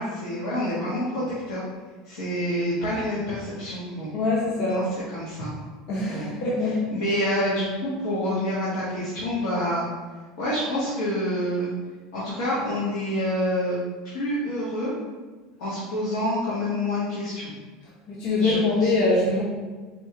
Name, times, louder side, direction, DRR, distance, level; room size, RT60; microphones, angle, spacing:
voice 1, 0.0-1.6 2.0-4.1 4.7-4.8 5.1-5.5 6.0-6.2 6.9-9.8 10.4-11.7 12.1-13.8 14.0-14.9 15.6-17.5 18.4-18.9, equal, 85° left, -9 dB, 1.1 m, -27 dB
voice 2, 4.1-4.9 5.9-6.9 18.1-19.4, left 2 dB, 50° left, -5 dB, 0.7 m, -23 dB
4.3 x 2.3 x 2.8 m, 1.4 s
supercardioid pair, 140°, 2 cm